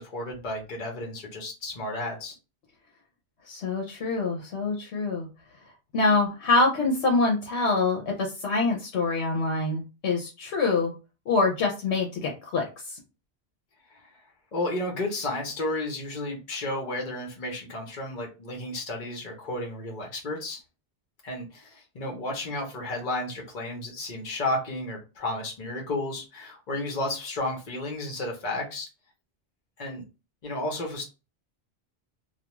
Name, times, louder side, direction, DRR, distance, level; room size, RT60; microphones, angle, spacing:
voice 1, 0.0-2.3 13.9-14.2 14.5-20.6 21.2-28.9 29.8-30.0 30.4-31.0, left 2 dB, 50° left, 1 dB, 0.9 m, -32 dB
voice 2, 3.5-5.3 5.9-10.9 11.3-13.0, left 3 dB, 80° left, 1 dB, 0.9 m, -25 dB
2.3 x 2.3 x 2.9 m, 0.29 s
omnidirectional pair, 1.1 m